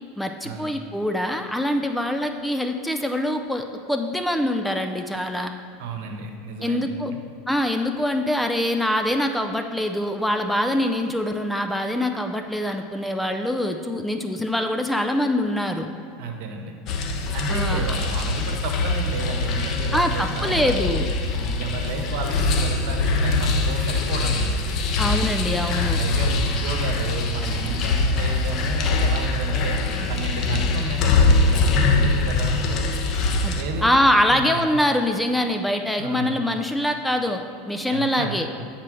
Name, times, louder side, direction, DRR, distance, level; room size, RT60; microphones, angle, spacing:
voice 1, 0.2-5.5 6.6-7.1 7.5-15.9 17.5-17.8 19.9-21.1 25.0-26.0 33.4-33.6 33.8-37.4 37.7-38.5, left 1 dB, 5° left, 5 dB, 0.4 m, -24 dB
voice 2, 5.8-6.9 16.2-16.7 17.3-20.7 21.3-24.6 26.0-29.8 30.1-32.6 33.5-33.9 34.3-34.4 36.0-36.4 37.9-38.5, right 3 dB, 70° right, 4 dB, 1.2 m, -32 dB
sound 1, 16.9-33.6, left 3 dB, 40° left, 0.8 m, -23 dB
9.2 x 4.4 x 6.2 m, 2.3 s
supercardioid pair, 135°, 0 cm